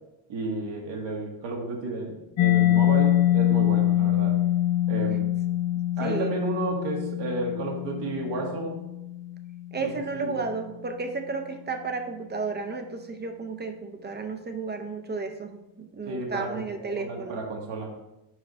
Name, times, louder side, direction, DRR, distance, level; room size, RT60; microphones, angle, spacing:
voice 1, 0.3-4.4 4.9-5.3 6.0-8.8 9.8-10.4 16.1-16.5 16.8-17.9, right 2 dB, 70° right, -1 dB, 1.4 m, -32 dB
Mallet percussion, 2.4-9.9, left 13 dB, 75° left, 0.6 m, -24 dB
voice 2, 6.0-6.3 9.7-17.4, right 4 dB, 25° right, 5 dB, 0.5 m, -33 dB
5.3 x 4.8 x 4.7 m, 0.94 s
cardioid pair, 145°, 46 cm